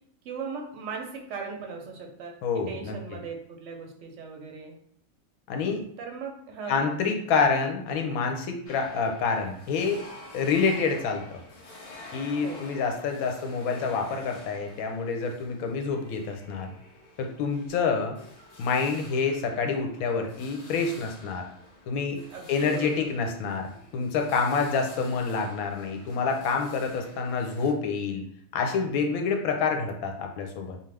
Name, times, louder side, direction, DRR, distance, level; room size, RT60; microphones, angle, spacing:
voice 1, 0.2-2.4 2.7-4.8 6.0-6.9 12.4-12.6 22.3-23.1, right 5 dB, 65° right, 2 dB, 0.9 m, -38 dB
voice 2, 2.4-2.9 5.5-5.8 6.7-10.0 10.3-11.2 12.1-16.7 17.2-18.2 18.6-21.4 21.9-22.2 22.5-28.2 28.5-30.8, left 5 dB, 85° left, 3 dB, 1.0 m, -27 dB
sound 1, 8.6-27.7, left 2 dB, 60° left, 0.3 m, -49 dB
2.4 x 2.4 x 3.2 m, 0.67 s
omnidirectional pair, 1.5 m